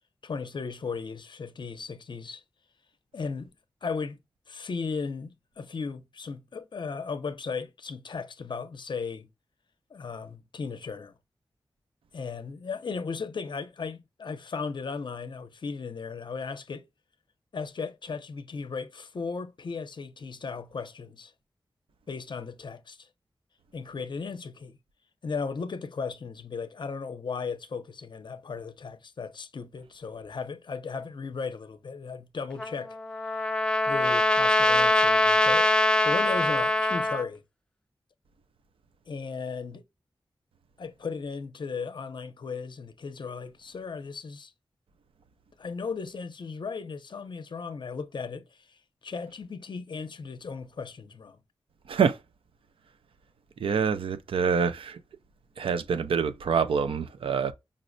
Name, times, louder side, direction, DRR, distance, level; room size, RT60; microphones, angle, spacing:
voice 1, 0.2-2.4 3.1-3.5 3.8-4.2 4.5-9.3 9.9-11.1 12.1-16.9 17.5-21.3 22.1-23.1 23.7-24.8 25.2-33.0 33.9-35.7 36.0-37.4 39.1-39.8 40.8-44.5 45.6-51.4, left 5 dB, 60° left, 0.5 m, -36 dB
Trumpet, 32.6-37.3, left 2 dB, 10° left, 0.5 m, -23 dB
voice 2, 51.9-52.2 53.6-55.0 55.6-57.5, right 6 dB, 85° right, 0.4 m, -26 dB
5.2 x 2.0 x 2.5 m
wide cardioid pair, 75°, 9 cm